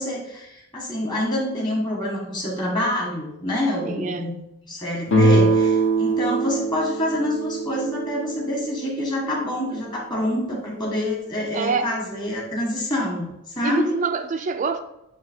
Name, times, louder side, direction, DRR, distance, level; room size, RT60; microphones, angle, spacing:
voice 1, 0.0-4.3 4.6-13.9, left 1 dB, 20° left, -3 dB, 1.6 m, -26 dB
voice 2, 3.8-4.2 11.5-11.9 13.6-14.8, right 5 dB, 35° right, 8 dB, 0.3 m, -25 dB
sound 1, 5.1-8.7, right 2 dB, 60° left, 0.9 m, -21 dB
7.5 x 2.9 x 4.5 m, 0.86 s
head